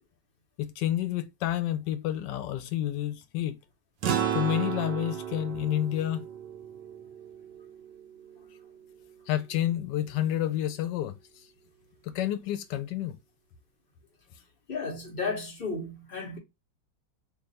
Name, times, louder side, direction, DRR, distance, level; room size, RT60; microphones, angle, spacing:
voice 1, 0.6-3.6 4.3-6.2 9.3-11.2 12.0-13.2, left 12 dB, 90° left, 1.2 m, -29 dB
sound 1, 4.0-8.7, right 9 dB, 85° right, 1.4 m, -33 dB
voice 2, 14.7-16.4, left 4 dB, 40° left, 0.8 m, -33 dB
3.3 x 2.3 x 3.9 m
omnidirectional pair, 1.8 m